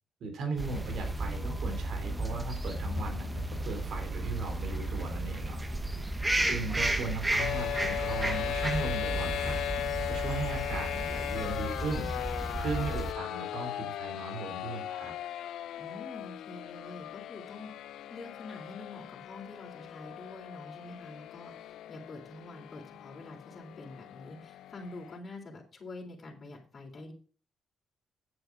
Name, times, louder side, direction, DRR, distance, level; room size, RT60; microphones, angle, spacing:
voice 1, 0.2-5.6 6.5-9.6 10.1-15.1, right 3 dB, 65° right, 4 dB, 3.4 m, -37 dB
sound 1, 0.6-13.1, right 1 dB, 15° right, 1.2 m, -33 dB
sound 2, 7.4-25.2, left 12 dB, 80° left, 0.4 m, -38 dB
voice 2, 15.8-27.1, left 2 dB, 35° left, -1 dB, 3.6 m, -46 dB
9.1 x 7.9 x 4.7 m, 0.39 s
cardioid pair, 90°, 0 cm